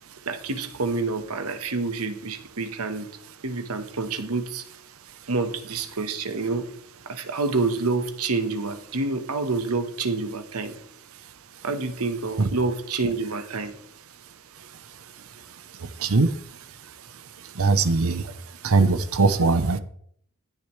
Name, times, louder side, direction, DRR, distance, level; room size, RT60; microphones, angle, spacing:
voice 1, 0.3-3.1 3.4-4.6 5.3-6.7 7.1-10.8 11.6-13.7 18.0-18.2, right 3 dB, 85° right, 9 dB, 1.3 m, -28 dB
voice 2, 15.7-16.4 17.4-18.3 18.6-19.8, right 3 dB, 70° right, 12 dB, 0.9 m, -21 dB
16.0 x 10.5 x 3.3 m, 0.67 s
head